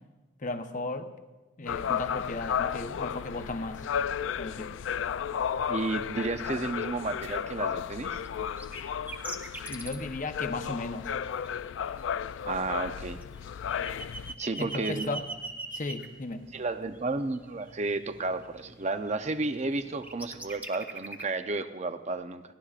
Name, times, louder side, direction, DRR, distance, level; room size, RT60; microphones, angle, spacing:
voice 1, 0.4-1.1 1.6-3.9 4.4-4.7 9.7-11.1 14.6-15.2 15.7-16.4, left 2 dB, 40° left, 7 dB, 0.8 m, -35 dB
sound 1, 1.7-14.3, left 8 dB, 70° left, 0.3 m, -33 dB
voice 2, 5.7-8.2 12.4-13.2 14.4-15.1 16.5-22.4, right 3 dB, 35° right, 9 dB, 0.6 m, -32 dB
sound 2, 8.2-8.3 8.6-9.9 11.1-11.5 11.9-16.1 17.0-18.2 18.6-19.3 19.5-21.2, right 2 dB, 10° right, 0.9 m, -40 dB
sound 3, 13.6-20.5, right 1 dB, 90° right, 5.4 m, -55 dB
30.0 x 11.5 x 2.4 m, 1.2 s
head